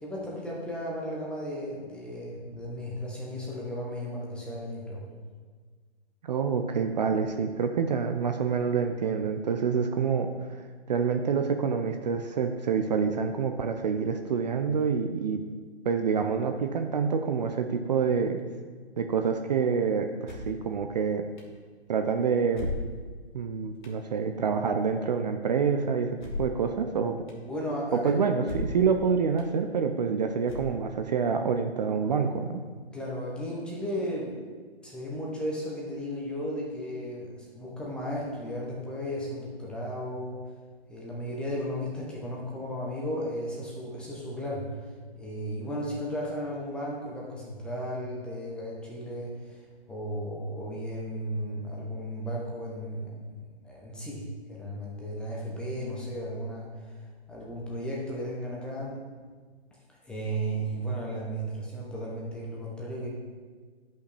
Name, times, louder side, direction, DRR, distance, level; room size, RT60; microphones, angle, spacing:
voice 1, 0.0-5.0 27.5-28.2 32.9-34.3 34.8-40.4 40.9-44.7 45.2-57.0 57.3-59.0 60.0-63.1, equal, 5° left, -4 dB, 0.8 m, -35 dB
voice 2, 6.2-10.3 10.9-15.4 15.9-18.4 19.0-21.3 21.9-22.7 23.3-27.2 27.9-32.6, right 6 dB, 40° right, 5 dB, 0.5 m, -27 dB
sound 1, 20.2-20.6 21.4-21.5 22.5-23.2 23.8-24.0 26.2-26.6 27.3-27.4 28.4-28.9 29.4-29.5 30.4-31.0, left 2 dB, 45° left, 1.6 m, -36 dB
11.5 x 5.7 x 3.3 m, 1.5 s
hypercardioid pair, 140°, 33 cm